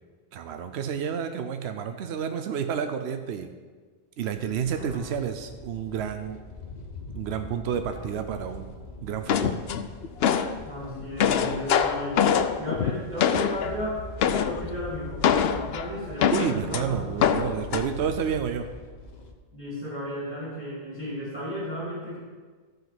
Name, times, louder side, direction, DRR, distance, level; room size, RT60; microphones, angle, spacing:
voice 1, 0.3-3.5 4.2-6.4 7.1-8.8 9.0-9.6 16.3-18.7, right 7 dB, 75° right, 7 dB, 0.9 m, -30 dB
sound 1, 4.3-19.3, left 2 dB, 45° left, 1.0 m, -43 dB
voice 2, 4.7-5.1 10.6-12.2 12.5-17.2 19.5-22.2, equal, 5° right, -7 dB, 2.8 m, -34 dB
sound 2, 9.3-10.6 11.0-13.8 14.2-14.6 15.2-16.8 17.2-17.9, left 8 dB, 70° left, 0.8 m, -24 dB
13.5 x 5.3 x 6.0 m, 1.5 s
omnidirectional pair, 1.1 m